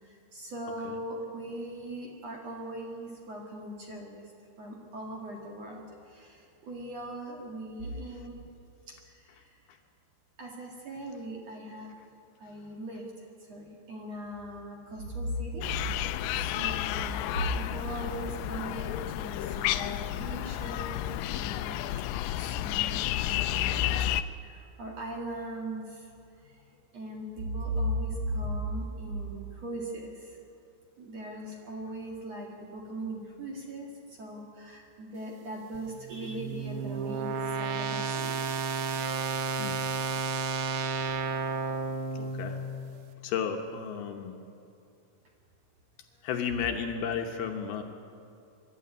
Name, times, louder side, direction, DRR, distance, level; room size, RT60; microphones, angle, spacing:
voice 1, 0.0-4.2 4.6-8.4 8.9-9.6 10.4-11.9 12.4-15.8 16.3-22.1 22.5-24.0 24.4-26.6 26.9-30.4 31.0-38.5, right 1 dB, 45° right, -1 dB, 2.5 m, -38 dB
sound 1, 15.6-24.2, left 13 dB, 90° left, 2.9 m, -31 dB
sound 2, 35.7-42.9, right 5 dB, 70° right, 2.6 m, -32 dB
voice 2, 42.1-42.6 43.2-44.4 46.2-47.8, left 7 dB, 70° left, 4 dB, 2.8 m, -33 dB
24.0 x 12.5 x 9.7 m, 2.6 s
omnidirectional pair, 5.0 m